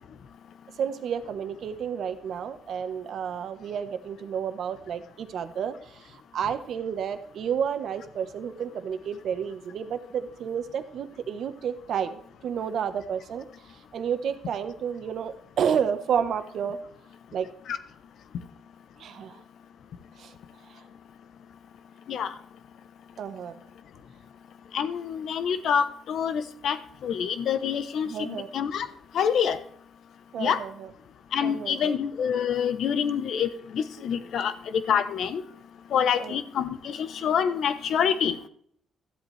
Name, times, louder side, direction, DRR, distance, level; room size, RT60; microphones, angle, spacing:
voice 1, 0.8-13.5 13.9-16.8 17.3-17.5 19.0-19.4 20.2-20.3 20.7-20.8 23.2-23.5 28.0-28.5 30.3-30.9 31.4-32.0 36.1-36.4, right 8 dB, 70° right, 10 dB, 1.1 m, -31 dB
voice 2, 24.7-26.8 27.0-28.9 29.1-29.6 30.4-30.6 31.3-35.4 35.9-38.4, left 8 dB, 70° left, 13 dB, 0.9 m, -26 dB
13.0 x 8.2 x 3.3 m, 0.64 s
cardioid pair, 90°, 0 cm